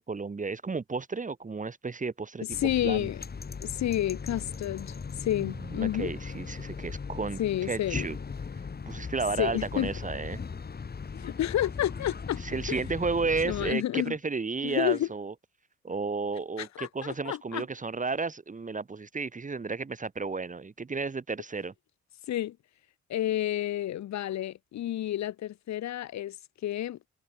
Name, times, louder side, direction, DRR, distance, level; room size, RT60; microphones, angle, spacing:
voice 1, 0.0-2.5 2.8-3.1 5.4-8.2 8.9-10.4 12.4-15.3 15.8-21.7, right 4 dB, 25° right, 1.8 m, -33 dB
sound 1, 2.5-13.7, left 5 dB, 30° left, 2.2 m, -38 dB
voice 2, 2.6-3.2 3.6-4.9 5.2-6.1 7.4-8.0 9.4-9.9 11.1-12.4 12.7-12.8 13.4-14.1 14.6-15.1 16.6-17.6 22.3-22.6 23.1-26.4 26.6-27.0, left 12 dB, 65° left, 1.0 m, -30 dB
cardioid pair, 90°, 30 cm